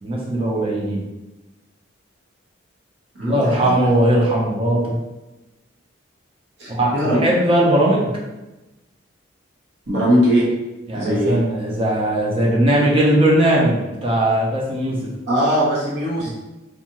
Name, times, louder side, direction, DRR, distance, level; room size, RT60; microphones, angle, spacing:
voice 1, 0.0-1.0 3.2-5.0 6.7-6.9 7.2-8.1 10.9-15.1 16.2-16.3, right 1 dB, 25° right, -3 dB, 0.5 m, -19 dB
voice 2, 3.2-3.7 6.6-7.3 9.9-10.5 10.9-11.4 15.3-16.3, equal, 65° right, -8 dB, 1.0 m, -20 dB
2.7 x 2.4 x 2.8 m, 1.0 s
head